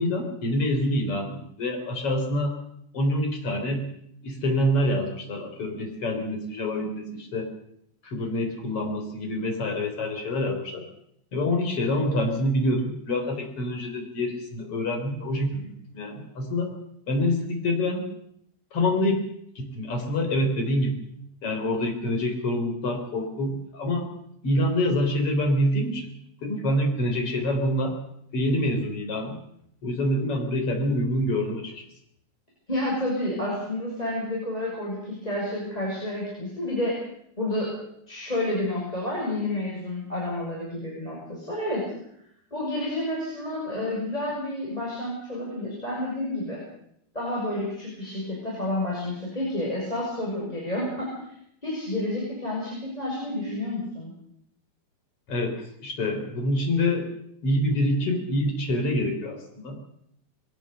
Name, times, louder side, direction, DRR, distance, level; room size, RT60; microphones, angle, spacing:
voice 1, 0.0-2.6 2.9-3.9 4.2-7.5 8.0-10.9 11.3-16.7 17.1-18.0 18.7-19.3 19.6-21.1 21.4-24.1 24.4-26.1 26.4-28.0 28.3-29.4 29.8-31.9 55.3-57.1 57.4-59.8, left 1 dB, 35° left, 3 dB, 4.3 m, -26 dB
voice 2, 32.7-37.0 37.4-37.7 38.1-41.8 42.5-46.6 47.1-51.1 51.6-54.1, left 1 dB, 10° left, -4 dB, 6.6 m, -30 dB
22.0 x 18.0 x 6.8 m, 0.72 s
omnidirectional pair, 5.0 m